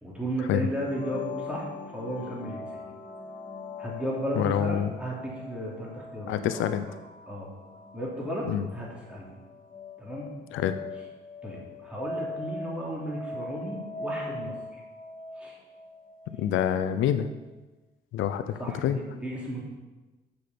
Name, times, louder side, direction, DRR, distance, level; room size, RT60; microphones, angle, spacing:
voice 1, 0.0-2.6 3.8-6.7 7.3-7.5 7.9-9.3 10.0-10.3 11.4-14.8 15.4-15.6 18.6-19.7, right 1 dB, 5° right, -4 dB, 3.0 m, -34 dB
sound 1, 0.8-16.4, left 3 dB, 45° left, 1.5 m, -41 dB
voice 2, 4.4-4.9 6.3-6.9 8.5-8.7 10.5-10.7 16.4-17.3 18.1-19.0, left 10 dB, 85° left, 10 dB, 0.6 m, -26 dB
7.1 x 6.5 x 5.9 m, 1.1 s
cardioid pair, 90°, 20 cm